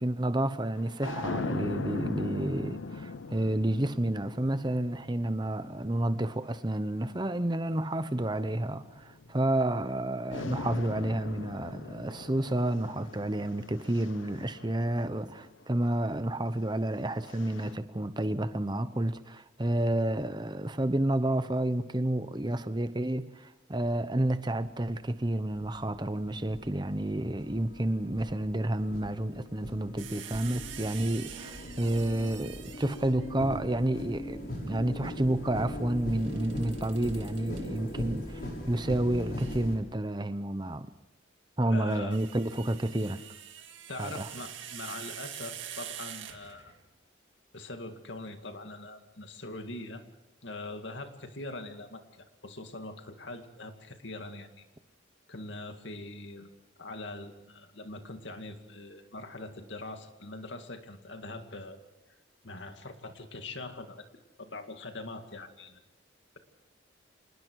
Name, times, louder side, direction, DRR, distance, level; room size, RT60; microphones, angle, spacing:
voice 1, 0.0-38.4 38.7-40.9 41.6-43.2 44.0-44.3, right 1 dB, 25° right, 0.9 m, -30 dB
sound 1, 0.8-7.3 8.1-10.0 10.3-15.6 16.6-17.7, left 3 dB, 85° left, 0.8 m, -41 dB
sound 2, 24.7-24.8 25.5-39.8, left 1 dB, 50° left, 6.1 m, -40 dB
sound 3, 30.0-33.3 36.2-37.6 39.4-39.6 41.7-46.8, right 10 dB, 80° right, 2.1 m, -45 dB
voice 2, 41.7-42.2 43.9-46.7 47.5-50.0 50.4-54.7 55.3-56.5 56.8-61.8 62.4-64.1 64.4-65.8, left 2 dB, 70° left, 2.2 m, -42 dB
27.0 x 20.0 x 4.8 m
head